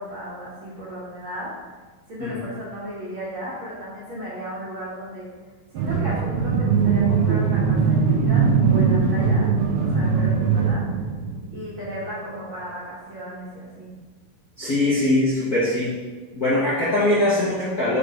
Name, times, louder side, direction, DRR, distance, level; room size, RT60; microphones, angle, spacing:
voice 1, 0.0-1.5 2.1-5.3 5.7-9.5 9.8-10.8 11.5-13.9, equal, 50° right, -8 dB, 1.7 m, -35 dB
sound 1, 5.8-12.0, right 5 dB, 85° right, 2.7 m, -20 dB
voice 2, 14.6-16.0 16.3-18.0, left 1 dB, 65° left, -9 dB, 0.9 m, -21 dB
6.3 x 4.8 x 5.1 m, 1.4 s
omnidirectional pair, 4.3 m